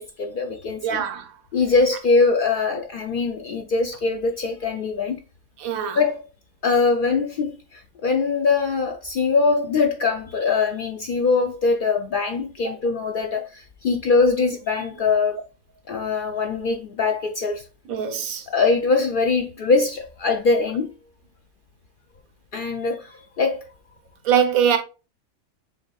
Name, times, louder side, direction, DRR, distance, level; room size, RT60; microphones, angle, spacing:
voice 1, 0.0-1.0 1.5-5.2 5.9-6.2 6.6-15.4 15.9-17.7 18.5-20.9 22.5-23.7, left 4 dB, 80° left, 0.4 m, -22 dB
voice 2, 0.8-1.3 5.6-6.0 12.6-12.7 17.9-18.5 24.2-24.8, right 8 dB, 80° right, 1.2 m, -22 dB
7.1 x 2.6 x 2.3 m
omnidirectional pair, 1.5 m